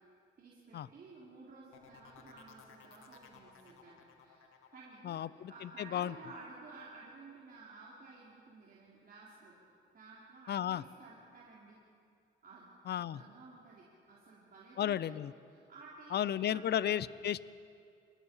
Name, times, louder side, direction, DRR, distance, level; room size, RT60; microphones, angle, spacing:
voice 1, 0.4-9.5 9.9-11.8 12.4-15.1 15.5-16.2 16.5-16.8, right 3 dB, 50° right, -6 dB, 4.4 m, -54 dB
sound 1, 1.7-7.4 7.7-8.2, left 7 dB, 85° left, 2.2 m, -60 dB
voice 2, 5.0-6.1 10.5-10.8 12.9-13.2 14.8-15.3 16.1-17.4, left 10 dB, 55° left, 18 dB, 0.6 m, -34 dB
26.5 x 20.0 x 5.7 m, 2.4 s
cardioid pair, 90°, 20 cm